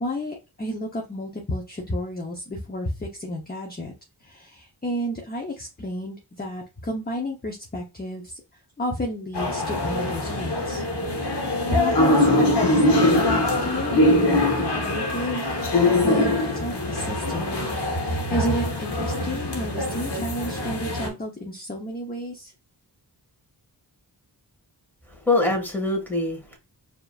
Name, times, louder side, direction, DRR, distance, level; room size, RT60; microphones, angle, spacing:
voice 1, 0.0-3.9 4.2-10.8 11.4-17.6 18.1-22.5, equal, 20° left, 0.9 m, -32 dB
sound 1, 9.3-21.1, left 1 dB, 65° left, 1.3 m, -23 dB
voice 2, 25.1-26.6, left 2 dB, 5° left, 1.9 m, -24 dB
4.7 x 3.0 x 2.4 m
cardioid pair, 60°, 43 cm